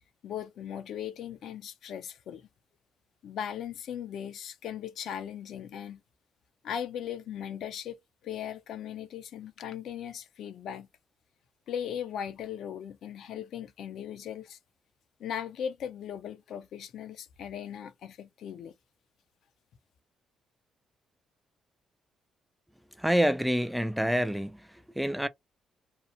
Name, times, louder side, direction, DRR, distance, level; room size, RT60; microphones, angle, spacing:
voice 1, 0.2-2.5 3.2-6.0 6.6-7.9 8.2-10.9 11.7-14.6 15.2-18.7, left 9 dB, 75° left, 0.5 m, -38 dB
voice 2, 23.0-25.3, equal, 5° right, 0.3 m, -27 dB
2.8 x 2.0 x 2.6 m
cardioid pair, 90°, 0 cm